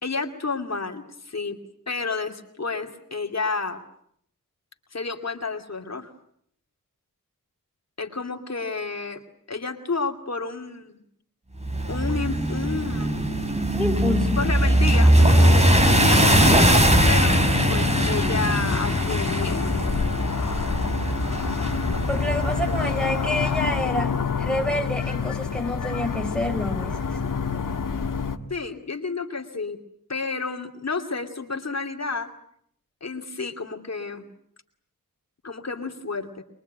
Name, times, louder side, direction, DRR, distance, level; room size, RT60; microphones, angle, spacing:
voice 1, 0.0-1.6 1.9-3.8 4.9-6.1 8.0-9.2 9.5-11.0 11.9-13.1 14.4-15.2 16.0-19.7 28.5-29.8 30.1-32.3 33.0-34.3 35.4-36.4, left 4 dB, 50° left, 3 dB, 2.6 m, -30 dB
sound 1, 11.6-23.8, right 1 dB, 20° right, 3.3 m, -21 dB
voice 2, 13.7-14.5 22.1-27.2, left 1 dB, 5° left, 2 dB, 4.7 m, -28 dB
sound 2, 15.2-28.4, left 5 dB, 70° left, 1.7 m, -27 dB
24.0 x 23.0 x 9.2 m, 0.68 s
wide cardioid pair, 105°, 33 cm